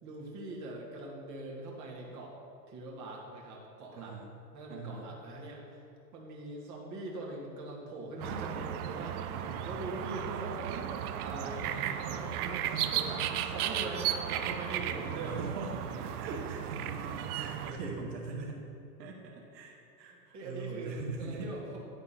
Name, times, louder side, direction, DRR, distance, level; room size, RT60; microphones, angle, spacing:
voice 1, 0.0-2.4 2.7-4.2 4.5-5.9 6.1-9.3 9.6-10.9 11.2-15.4 20.1-21.8, right 2 dB, 35° right, -3 dB, 1.8 m, -42 dB
voice 2, 3.9-4.3 4.7-5.1 9.3-9.7 12.6-12.8 15.2-15.7 16.0-18.6 19.0-21.5, right 3 dB, 80° right, -1 dB, 1.2 m, -41 dB
sound 1, 8.2-17.7, right 10 dB, 60° right, 0.7 m, -35 dB
10.0 x 3.6 x 5.8 m, 2.7 s
hypercardioid pair, 105°, 50 cm